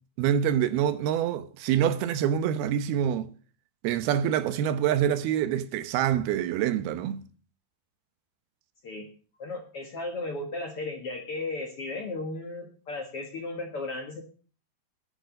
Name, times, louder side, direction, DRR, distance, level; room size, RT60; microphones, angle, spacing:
voice 1, 0.2-3.3 3.8-7.2, right 9 dB, 80° right, 2.8 m, -26 dB
voice 2, 9.4-14.2, left 2 dB, 50° left, 1.8 m, -35 dB
11.0 x 10.5 x 6.3 m
omnidirectional pair, 4.5 m